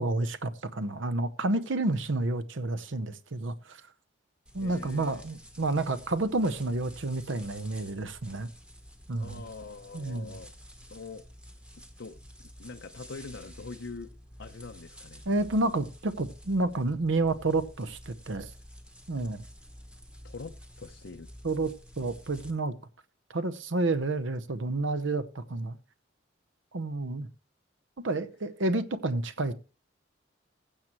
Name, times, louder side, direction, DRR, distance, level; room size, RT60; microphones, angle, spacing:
voice 1, 0.0-3.8 4.5-8.5 9.1-9.4 9.9-10.4 15.3-18.5 19.1-19.4 21.4-22.7 23.3-25.8 26.7-27.3 28.0-29.5, right 2 dB, 70° right, 0.8 m, -30 dB
sound 1, 4.5-22.5, equal, 5° right, 1.1 m, -50 dB
voice 2, 4.6-5.2 9.2-10.5 10.9-11.3 12.0-12.2 12.6-14.1 14.4-15.2 20.2-21.3, left 4 dB, 65° left, 0.6 m, -43 dB
15.5 x 7.5 x 3.0 m
head